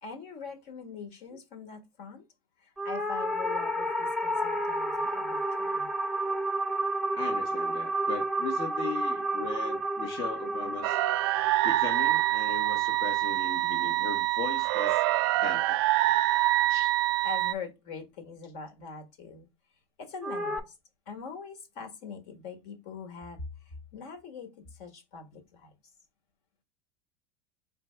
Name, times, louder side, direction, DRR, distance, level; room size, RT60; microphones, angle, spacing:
voice 1, 0.0-2.2 2.6-5.9 17.2-19.5 20.0-20.7 21.1-25.7, left 5 dB, 65° left, 1.5 m, -43 dB
sound 1, 2.8-13.3 20.2-20.6, right 1 dB, ahead, 0.8 m, -31 dB
voice 2, 7.1-11.0 11.6-15.0 15.4-15.8 16.7-16.9, left 6 dB, 40° left, 0.9 m, -38 dB
sound 2, 10.8-17.5, right 17 dB, 70° right, 0.4 m, -26 dB
4.5 x 3.4 x 3.3 m
hypercardioid pair, 100°, 13 cm